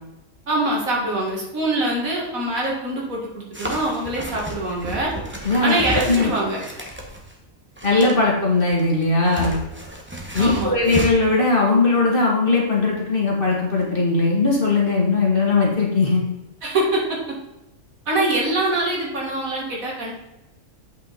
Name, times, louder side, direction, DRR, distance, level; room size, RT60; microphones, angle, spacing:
voice 1, 0.5-5.1 5.6-6.6 10.4-10.7 16.6-17.0 18.1-20.1, right 2 dB, 75° right, -2 dB, 2.4 m, -24 dB
sound 1, 3.5-7.3 7.8-8.2 8.6-11.1, right 1 dB, 10° right, 1.0 m, -31 dB
voice 2, 5.4-5.8 6.1-6.3 7.8-9.5 10.3-16.2, left 3 dB, 40° left, -3 dB, 2.1 m, -19 dB
8.5 x 5.3 x 4.1 m, 0.94 s
omnidirectional pair, 1.5 m